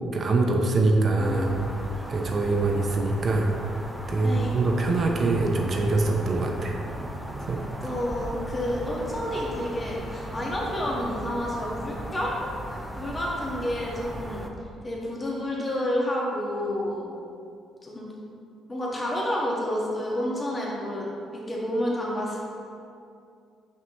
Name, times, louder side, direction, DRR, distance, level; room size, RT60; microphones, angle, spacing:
voice 1, 0.1-1.5 2.1-6.8 7.5-7.6, right 2 dB, 50° right, 1 dB, 0.8 m, -24 dB
voice 2, 1.2-1.6 4.2-4.5 7.8-12.3 13.0-14.5 14.8-17.1 17.8-18.1 18.7-22.4, left 1 dB, 25° left, -4 dB, 1.5 m, -30 dB
sound 1, 1.2-14.5, right 1 dB, 5° right, 0.7 m, -37 dB
6.1 x 5.8 x 3.0 m, 2.5 s
supercardioid pair, 65°, 0 cm